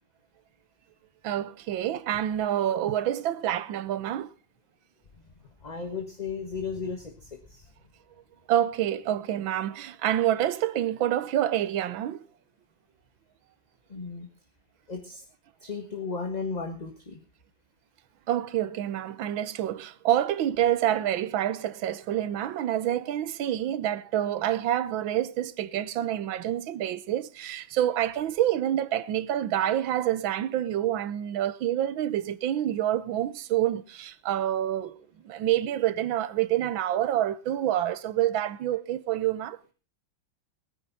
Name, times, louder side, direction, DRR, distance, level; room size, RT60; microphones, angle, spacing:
voice 1, 1.2-4.3 8.5-12.2 18.3-39.6, right 12 dB, 85° right, 1.6 m, -27 dB
voice 2, 5.6-7.7 13.9-14.3 14.9-15.2 15.6-17.2, left 5 dB, 25° left, 1.4 m, -35 dB
20.5 x 9.9 x 4.1 m
omnidirectional pair, 2.1 m